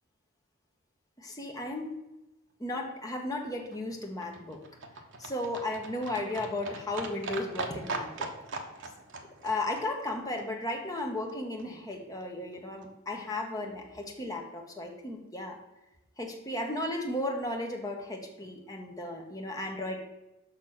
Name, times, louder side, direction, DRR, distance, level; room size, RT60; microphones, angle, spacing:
voice 1, 1.2-2.0 2.6-4.6 5.2-8.3 9.4-15.6 16.2-20.0, left 1 dB, 15° left, 1 dB, 1.2 m, -35 dB
Livestock farm animals working animals, 3.1-11.3 11.6-11.7 11.9-12.0 12.2-12.3 12.5-12.6 12.8-12.9 13.1-13.2 13.5-13.6 13.8-13.9, right 3 dB, 60° right, 1.0 m, -41 dB
6.7 x 5.7 x 5.8 m, 0.98 s
head